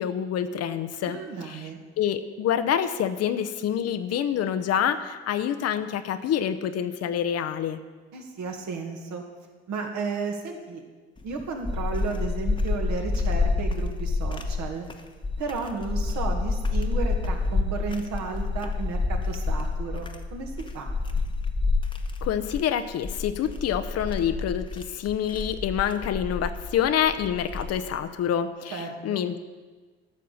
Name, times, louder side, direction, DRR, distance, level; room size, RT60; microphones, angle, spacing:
voice 1, 0.0-1.7 2.0-7.8 22.2-29.4, left 9 dB, 50° left, 10 dB, 0.8 m, -27 dB
voice 2, 1.0-1.8 8.1-9.2 9.7-10.8 11.2-14.9 15.4-20.9 28.7-29.2, right 4 dB, 60° right, 2 dB, 2.0 m, -33 dB
sound 1, 11.2-28.0, left 3 dB, 15° left, 1.1 m, -28 dB
11.5 x 6.6 x 7.1 m, 1.4 s
hypercardioid pair, 65°, 32 cm